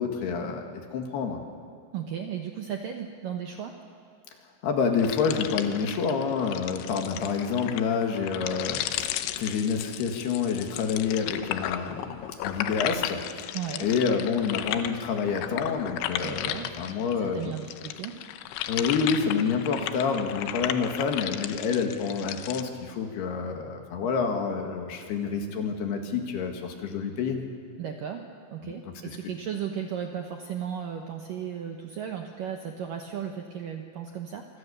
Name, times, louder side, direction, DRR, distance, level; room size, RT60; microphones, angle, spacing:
voice 1, 0.0-1.4 4.6-13.4 13.8-17.5 18.7-27.4 28.6-29.2, left 5 dB, 65° left, 3 dB, 3.6 m, -28 dB
voice 2, 1.9-3.8 13.5-13.9 16.2-16.7 17.2-18.2 27.8-28.2 28.5-34.5, right 8 dB, 70° right, 3 dB, 2.1 m, -35 dB
sound 1, 4.9-17.2 17.5-22.6, left 12 dB, 80° left, 3.2 m, -35 dB
26.5 x 25.0 x 6.9 m, 2.3 s
omnidirectional pair, 5.4 m